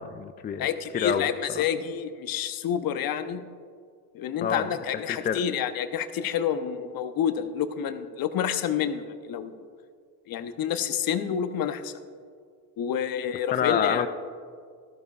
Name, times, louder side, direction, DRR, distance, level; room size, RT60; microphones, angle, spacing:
voice 1, 0.0-0.7 0.9-1.3 1.6-1.7 4.4-4.7 5.1-5.4 13.5-14.1, left 8 dB, 20° left, 9 dB, 0.3 m, -27 dB
voice 2, 0.6-3.4 4.1-9.5 10.3-11.9 12.8-14.1, left 8 dB, 45° left, 10 dB, 0.9 m, -28 dB
13.5 x 13.5 x 2.4 m, 2.1 s
hypercardioid pair, 70°, 49 cm